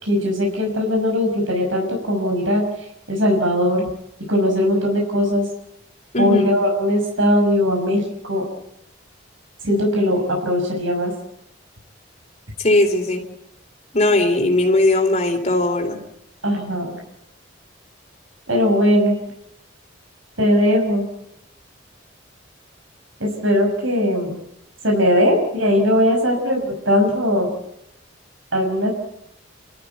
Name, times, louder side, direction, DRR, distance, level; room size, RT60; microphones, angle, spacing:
voice 1, 0.0-2.6 3.1-3.8 4.3-5.4 6.2-8.4 9.6-11.1 16.4-17.0 18.5-19.1 20.4-21.0 23.2-24.4 24.8-27.5 28.5-28.9, equal, 80° right, 1 dB, 6.0 m, -19 dB
voice 2, 12.6-13.2 13.9-16.0, left 2 dB, 35° left, 3 dB, 3.7 m, -18 dB
29.5 x 13.5 x 9.3 m, 0.80 s
head